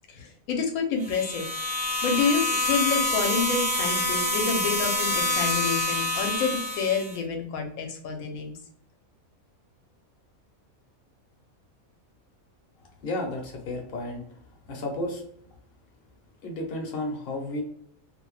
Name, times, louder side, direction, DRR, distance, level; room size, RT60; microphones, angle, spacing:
voice 1, 0.1-1.5 2.0-8.5, left 5 dB, 75° left, 3 dB, 1.1 m, -28 dB
sound 1, 1.0-7.2, left 2 dB, 40° right, 0.4 m, -27 dB
voice 2, 13.0-14.2 14.7-15.2 16.4-17.6, left 1 dB, 50° left, 0 dB, 0.8 m, -32 dB
2.7 x 2.1 x 3.1 m, 0.67 s
omnidirectional pair, 1.5 m